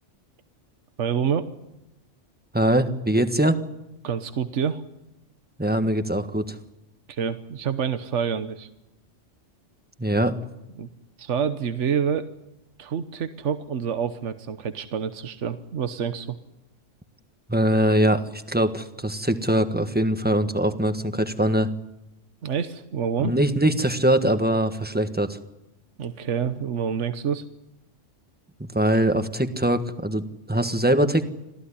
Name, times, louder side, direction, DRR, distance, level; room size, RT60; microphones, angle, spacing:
voice 1, 1.0-1.5 4.0-4.8 7.1-8.7 10.8-10.9 11.2-12.3 12.8-16.4 22.4-23.4 26.0-27.4, right 7 dB, 75° right, 10 dB, 1.4 m, -27 dB
voice 2, 2.5-3.6 5.6-6.6 10.0-10.4 17.5-21.7 23.2-25.4 28.6-31.3, right 1 dB, 10° right, 8 dB, 1.4 m, -22 dB
26.5 x 16.0 x 10.0 m, 0.92 s
omnidirectional pair, 1.2 m